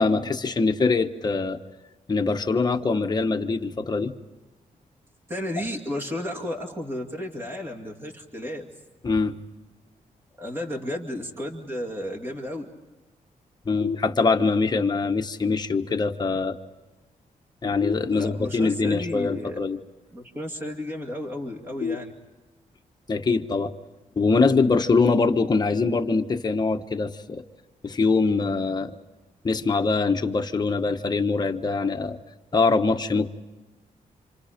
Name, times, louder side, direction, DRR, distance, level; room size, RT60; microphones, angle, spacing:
voice 1, 0.0-1.6 2.1-4.1 9.0-9.4 13.7-16.6 17.6-19.8 23.1-23.7 24.2-27.4 27.8-28.9 29.4-32.2 32.5-33.3, left 4 dB, 30° left, 5 dB, 1.1 m, -23 dB
voice 2, 5.3-8.7 10.4-12.7 18.1-19.6 20.1-22.1, left 1 dB, 15° right, 0 dB, 2.4 m, -33 dB
sound 1, 13.8-14.8 17.8-18.8 21.8-22.8, left 5 dB, 70° left, 0.8 m, -34 dB
28.0 x 27.5 x 5.2 m, 1.2 s
wide cardioid pair, 160°, 14 cm